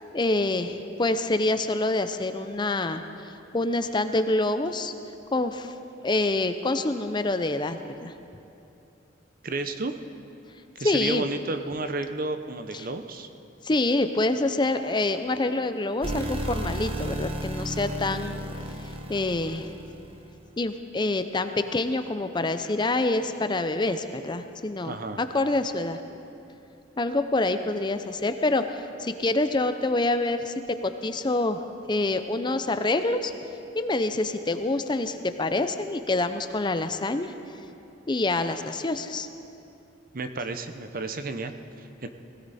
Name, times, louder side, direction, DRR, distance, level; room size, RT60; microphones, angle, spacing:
voice 1, 0.1-4.9 5.3-5.7 6.0-8.1 10.8-11.2 12.7-12.9 13.6-18.4 19.1-19.7 20.6-26.0 27.0-30.5 30.8-33.3 33.7-37.3 38.1-39.3, left 2 dB, 25° left, 9 dB, 0.5 m, -26 dB
voice 2, 9.4-9.9 10.8-13.3 24.8-25.2 40.1-42.1, right 3 dB, 50° right, 8 dB, 0.8 m, -32 dB
sound 1, 16.0-20.3, right 1 dB, 30° right, 1.1 m, -33 dB
20.0 x 16.5 x 4.2 m, 2.8 s
head